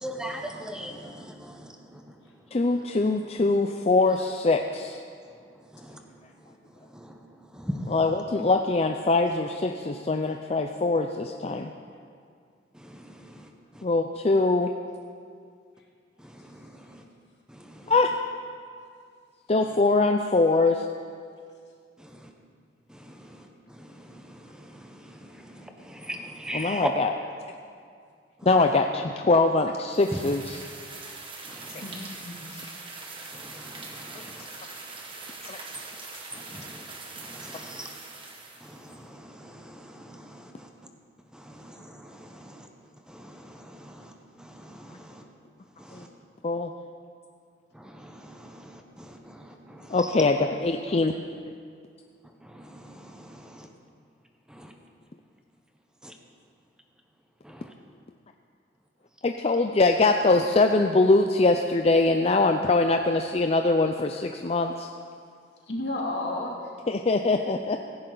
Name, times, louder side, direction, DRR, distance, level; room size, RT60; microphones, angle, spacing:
voice 1, 0.0-2.0 5.7-6.0 6.9-7.2 7.5-8.0 12.7-13.8 16.2-17.0 17.5-17.9 22.0-22.3 22.9-26.9 30.1-30.2 31.5-31.8 33.3-34.5 36.3-36.9 37.2-37.9 38.6-40.7 41.3-42.7 43.1-44.1 44.4-45.2 45.8-46.1 47.7-50.0 52.4-53.7 54.5-54.7 56.0-56.1 57.4-57.7, equal, 5° right, 3 dB, 1.0 m, -41 dB
voice 2, 2.5-5.0 7.9-11.7 13.8-14.7 17.9-18.1 19.5-20.9 26.5-27.1 28.4-30.6 31.7-31.8 35.5-35.6 45.9-46.0 46.4-46.7 49.9-51.1 59.2-64.9 66.9-67.8, left 3 dB, 35° left, 5 dB, 0.5 m, -23 dB
sound 1, 29.9-38.9, right 3 dB, 30° right, 1.6 m, -42 dB
voice 3, 31.8-32.8 45.9-46.0 65.7-66.7, left 1 dB, 80° left, -2 dB, 2.6 m, -33 dB
16.5 x 15.0 x 4.0 m, 2.2 s
head